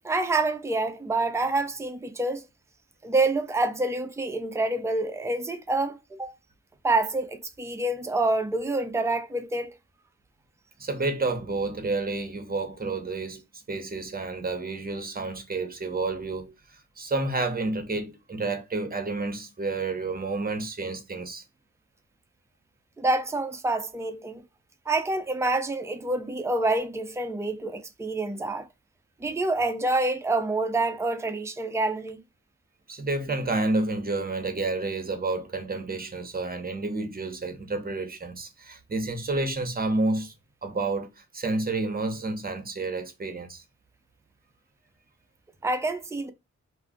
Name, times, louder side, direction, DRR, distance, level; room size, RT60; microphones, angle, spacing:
voice 1, 0.0-2.4 3.0-6.3 6.8-9.8 23.0-24.4 24.9-28.7 29.2-32.2 45.6-46.3, right 2 dB, 10° right, 0.5 m, -27 dB
voice 2, 10.8-21.4 32.9-40.3 40.6-43.6, right 3 dB, 30° right, 0.9 m, -30 dB
2.5 x 2.3 x 3.6 m
wide cardioid pair, 80°, 30 cm